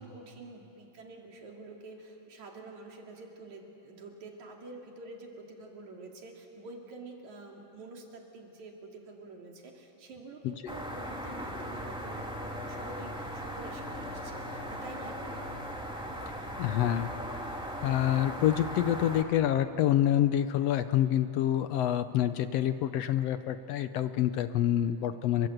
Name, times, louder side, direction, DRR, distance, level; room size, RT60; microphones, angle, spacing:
voice 1, 0.0-15.4, right 3 dB, 75° right, 1 dB, 4.0 m, -47 dB
sound 1, 10.7-19.2, equal, ahead, 2.4 m, -38 dB
voice 2, 16.6-17.1 17.8-25.5, left 11 dB, 75° left, 11 dB, 1.6 m, -27 dB
28.0 x 24.0 x 7.9 m, 2.9 s
omnidirectional pair, 3.3 m